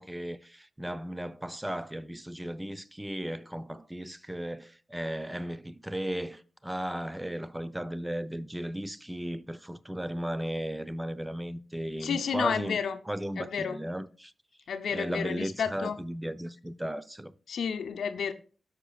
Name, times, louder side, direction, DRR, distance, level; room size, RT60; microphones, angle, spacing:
voice 1, 0.0-12.8 13.1-14.3 14.9-17.3, right 1 dB, 10° right, 0.6 m, -35 dB
voice 2, 12.0-13.0 13.4-13.8 14.7-16.0 17.5-18.3, left 7 dB, 80° left, 0.6 m, -31 dB
13.0 x 5.2 x 2.3 m
supercardioid pair, 45°, 0 cm